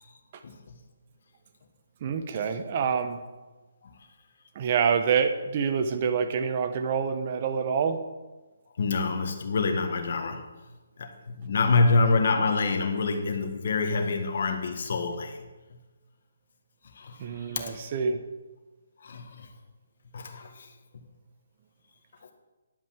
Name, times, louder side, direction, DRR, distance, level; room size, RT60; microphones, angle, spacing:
voice 1, 2.0-3.2 4.5-8.0 17.2-18.2, right 6 dB, 35° right, 8 dB, 0.9 m, -26 dB
voice 2, 8.8-10.4 11.0-15.4 16.9-17.8 19.0-19.5 20.1-20.7, left 3 dB, 55° left, 4 dB, 1.7 m, -26 dB
11.0 x 5.4 x 7.5 m, 1.2 s
hypercardioid pair, 165°, 0 cm